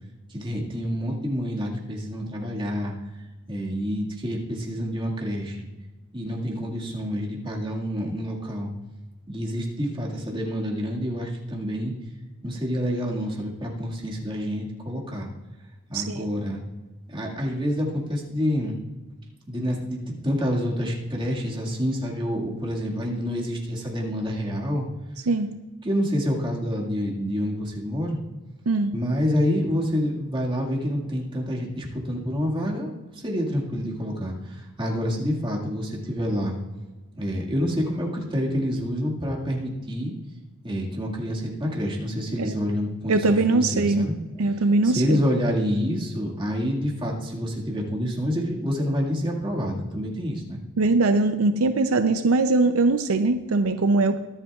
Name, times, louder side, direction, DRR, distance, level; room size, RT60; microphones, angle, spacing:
voice 1, 0.3-3.0 3.5-5.6 6.1-8.7 9.3-11.9 12.4-15.3 15.9-16.6 17.1-18.8 19.5-24.8 25.8-28.2 28.9-36.6 37.2-40.1 40.6-44.2 44.8-50.6, equal, 20° right, -2 dB, 1.9 m, -27 dB
voice 2, 15.9-16.3 25.3-25.5 28.7-28.9 42.4-42.5 43.1-44.1 44.4-45.2 50.8-54.2, right 3 dB, 75° right, 8 dB, 0.5 m, -21 dB
23.0 x 8.1 x 2.4 m, 1.2 s
head